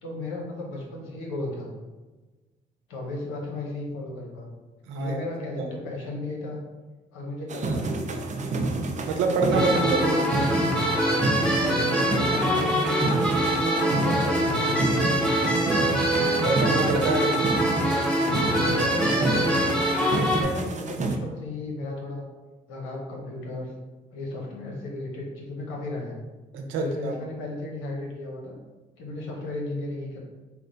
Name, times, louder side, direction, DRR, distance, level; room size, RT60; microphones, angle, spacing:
voice 1, 0.0-1.7 2.9-4.5 4.9-6.6 7.1-8.2 12.1-13.3 13.6-15.5 18.5-19.6 20.2-22.2 22.7-23.7 24.1-26.2 26.8-28.5 29.0-30.2, left 2 dB, 85° left, -1 dB, 0.9 m, -35 dB
voice 2, 4.9-5.2 5.6-5.7 9.1-10.3 16.4-17.4 26.5-27.1, right 3 dB, 85° right, 3 dB, 0.6 m, -26 dB
sound 1, 7.5-21.2, right 2 dB, 40° right, 0.6 m, -29 dB
sound 2, 9.5-20.4, equal, 5° left, 1.0 m, -24 dB
4.3 x 2.1 x 3.9 m, 1.2 s
supercardioid pair, 55°, 20 cm